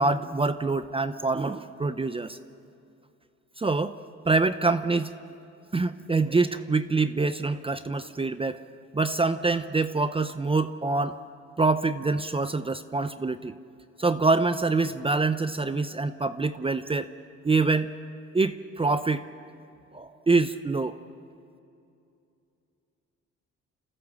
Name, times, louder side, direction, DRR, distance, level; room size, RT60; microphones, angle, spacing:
voice 1, 0.0-2.4 3.6-4.0 4.3-5.1 5.7-8.6 8.9-11.2 11.6-13.5 14.0-17.1 17.4-17.9 18.3-19.3 19.9-20.9, right 3 dB, 20° right, 11 dB, 0.6 m, -25 dB
27.5 x 14.5 x 7.3 m, 2.6 s
cardioid pair, 90°, 30 cm